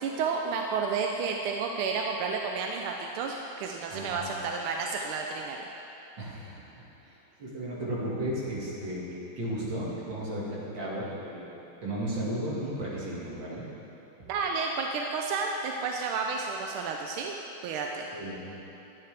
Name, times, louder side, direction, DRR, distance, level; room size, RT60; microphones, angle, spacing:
voice 1, 0.0-5.6 14.3-17.4 17.6-18.1, right 5 dB, 85° right, 1 dB, 1.5 m, -31 dB
voice 2, 3.9-4.3 6.2-6.7 7.1-7.2 7.4-9.1 9.4-11.5 11.8-13.7 18.1-18.5, right 1 dB, 60° right, -6 dB, 2.6 m, -34 dB
12.0 x 8.9 x 3.4 m, 2.9 s
omnidirectional pair, 2.3 m